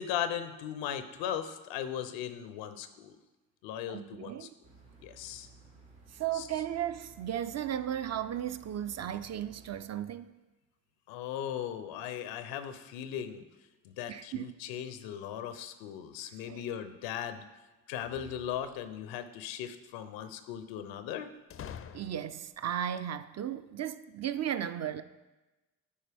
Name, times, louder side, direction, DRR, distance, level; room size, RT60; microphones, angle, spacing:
voice 1, 0.0-3.2 3.6-4.5 5.0-5.5 6.3-6.5 11.1-13.4 13.8-17.5 17.9-21.3, left 9 dB, 80° left, 11 dB, 0.7 m, -38 dB
voice 2, 3.9-4.5 6.1-10.3 14.1-14.6 16.4-16.6 21.9-25.0, right 10 dB, 40° right, 12 dB, 0.4 m, -35 dB
sound 1, 4.6-9.8, right 3 dB, 85° right, 2.3 m, -56 dB
sound 2, 18.0-19.0 21.5-22.6, left 8 dB, 35° left, 0.4 m, -47 dB
10.0 x 4.3 x 3.4 m, 1.1 s
hypercardioid pair, 55°, 44 cm